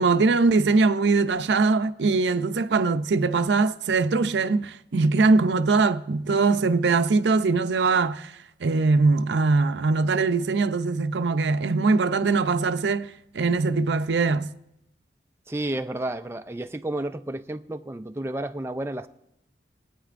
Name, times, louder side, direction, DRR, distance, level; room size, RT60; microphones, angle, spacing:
voice 1, 0.0-8.3 8.6-14.5, right 3 dB, 80° right, 0.5 m, -22 dB
voice 2, 15.5-19.1, right 1 dB, 15° right, 0.4 m, -31 dB
23.5 x 8.9 x 2.5 m
head